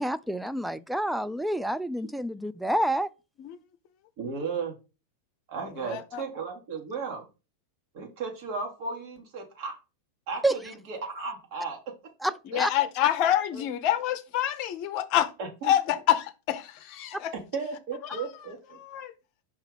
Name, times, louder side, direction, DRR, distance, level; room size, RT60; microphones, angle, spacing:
voice 1, 0.0-3.1 10.4-10.6 12.2-12.7 17.1-17.2, right 1 dB, ahead, 0.3 m, -28 dB
voice 2, 4.2-4.8 5.5-7.2 7.9-9.8 10.3-11.8 12.5-12.6 13.5-13.6 15.4-15.7 17.3-18.8, right 4 dB, 45° right, 1.6 m, -35 dB
voice 3, 5.8-6.2 12.5-15.3 15.6-17.3 18.1-18.2 18.7-19.1, left 11 dB, 40° left, 0.7 m, -27 dB
5.5 x 3.4 x 5.0 m
figure-of-eight pair, 90°, 0 cm